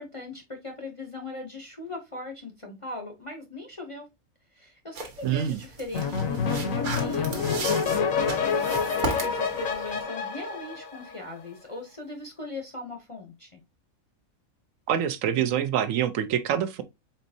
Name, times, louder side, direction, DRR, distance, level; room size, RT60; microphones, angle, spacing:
voice 1, 0.0-4.1 4.5-8.0 8.7-13.6, left 2 dB, 35° left, 0.6 m, -40 dB
sound 1, 4.9-10.0, right 3 dB, 90° right, 1.5 m, -36 dB
voice 2, 5.2-5.6 14.9-16.8, right 9 dB, 70° right, 1.0 m, -25 dB
sound 2, 5.9-11.4, left 5 dB, 75° left, 1.2 m, -27 dB
4.4 x 4.0 x 2.6 m
omnidirectional pair, 1.5 m